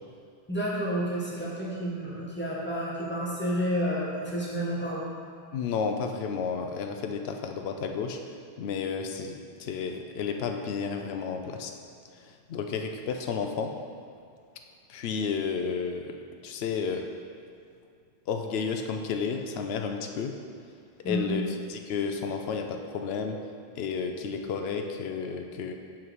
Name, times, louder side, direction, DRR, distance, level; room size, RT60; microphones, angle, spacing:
voice 1, 0.5-5.1 21.0-21.3, equal, 10° left, -6 dB, 1.4 m, -30 dB
voice 2, 5.5-8.2 8.6-11.7 12.2-13.7 14.9-16.2 16.4-17.0 18.3-20.3 21.0-23.4 23.8-25.7, left 5 dB, 80° left, 4 dB, 0.8 m, -32 dB
5.8 x 4.6 x 6.3 m, 2.3 s
omnidirectional pair, 1.0 m